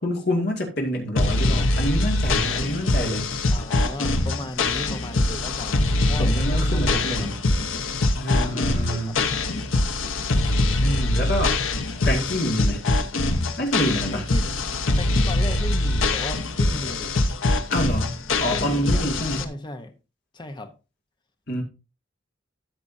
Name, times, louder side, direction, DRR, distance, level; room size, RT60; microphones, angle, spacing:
voice 1, 0.0-3.3 6.2-7.4 8.2-9.2 10.8-11.6 12.1-12.8 13.6-14.3 17.7-19.5 21.5-21.6, equal, 50° left, 2.2 m, -27 dB
sound 1, 1.2-19.4, left 2 dB, 80° left, 1.0 m, -23 dB
voice 2, 3.5-7.4 8.3-9.2 14.1-17.1 18.5-19.1 19.4-19.9 20.3-20.7, left 1 dB, 20° left, 0.8 m, -36 dB
13.5 x 6.9 x 2.7 m
head